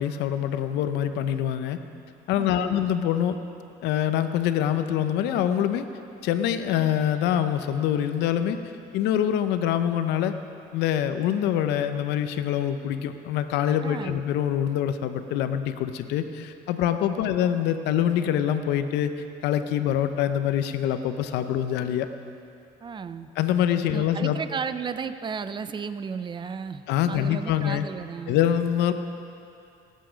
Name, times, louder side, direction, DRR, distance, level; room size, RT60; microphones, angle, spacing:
voice 1, 0.0-1.8 2.3-3.4 3.8-5.8 6.2-8.6 8.9-10.3 10.7-19.1 19.4-22.1 23.4-24.4 26.9-27.9 28.3-28.9, left 10 dB, 90° left, 9 dB, 0.7 m, -25 dB
voice 2, 2.4-2.8 13.8-14.2 17.2-17.3 22.8-23.3 23.9-28.4, right 6 dB, 30° right, 12 dB, 0.5 m, -34 dB
18.5 x 8.5 x 5.1 m, 2.6 s
cardioid pair, 110°, 17 cm